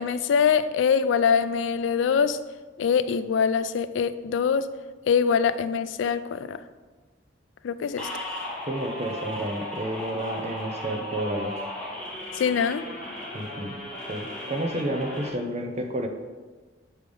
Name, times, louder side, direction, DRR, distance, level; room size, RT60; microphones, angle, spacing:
voice 1, 0.0-2.4 2.8-4.7 5.1-6.6 7.6-8.1 12.4-12.8, left 6 dB, 85° left, 0.3 m, -23 dB
sound 1, 8.0-15.3, left 1 dB, 5° left, 1.2 m, -36 dB
voice 2, 8.7-11.6 13.3-13.8 14.1-16.1, right 1 dB, 35° right, 0.6 m, -30 dB
6.4 x 3.4 x 5.3 m
head